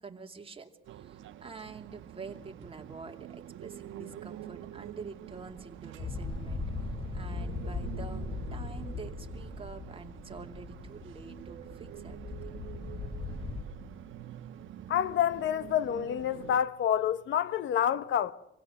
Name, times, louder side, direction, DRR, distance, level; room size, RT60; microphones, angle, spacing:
voice 1, 0.0-12.2, right 4 dB, 30° right, 2.8 m, -47 dB
sound 1, 0.8-16.6, right 11 dB, 80° right, 1.1 m, -46 dB
sound 2, 6.0-13.6, left 3 dB, 25° left, 6.5 m, -39 dB
voice 2, 14.9-18.3, left 10 dB, 75° left, 1.0 m, -28 dB
26.0 x 17.0 x 7.8 m
cardioid pair, 90°, 20 cm